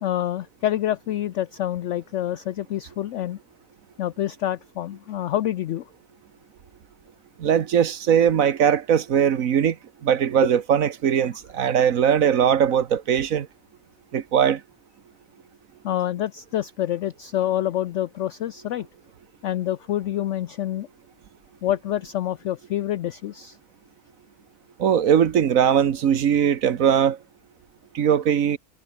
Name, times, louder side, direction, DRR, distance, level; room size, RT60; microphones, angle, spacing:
voice 1, 0.0-3.4 4.0-5.9 15.8-18.9 19.4-20.9 21.6-23.6, left 12 dB, 65° left, 0.7 m, -27 dB
voice 2, 7.4-9.8 10.0-13.5 14.1-14.6 24.8-27.2 27.9-28.6, right 8 dB, 55° right, 1.4 m, -20 dB
omnidirectional pair, 1.8 m